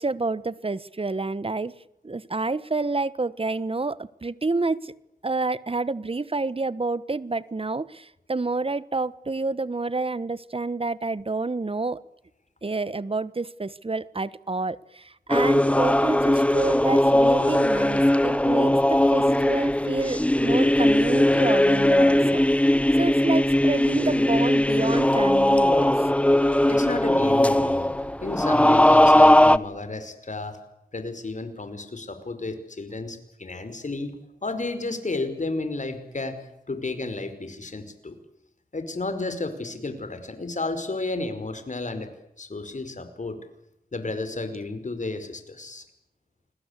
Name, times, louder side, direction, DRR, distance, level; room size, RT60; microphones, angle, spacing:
voice 1, 0.0-1.7 2.0-4.9 5.2-12.0 12.6-22.4 23.0-26.1, right 3 dB, 35° right, 18 dB, 1.2 m, -28 dB
sound 1, 15.3-29.6, left 1 dB, 10° left, 1.2 m, -19 dB
voice 2, 26.7-27.9 28.2-30.6 30.9-34.1 34.4-36.4 36.7-38.2 38.7-42.1 42.4-43.5 43.9-45.9, left 3 dB, 55° left, 9 dB, 5.3 m, -32 dB
28.5 x 21.0 x 8.4 m, 0.81 s
cardioid pair, 55°, 16 cm